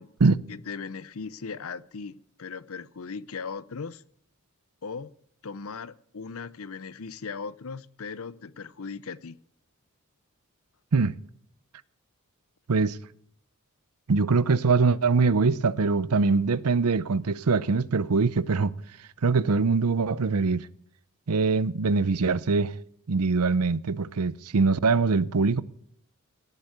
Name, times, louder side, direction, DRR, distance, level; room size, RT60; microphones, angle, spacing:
voice 1, 0.5-4.0 4.8-5.1 5.4-9.4, left 5 dB, 70° left, 0.7 m, -38 dB
voice 2, 14.1-18.7 19.2-20.7 21.3-22.7 23.1-25.6, right 4 dB, 85° right, 0.7 m, -23 dB
17.5 x 8.2 x 8.0 m
head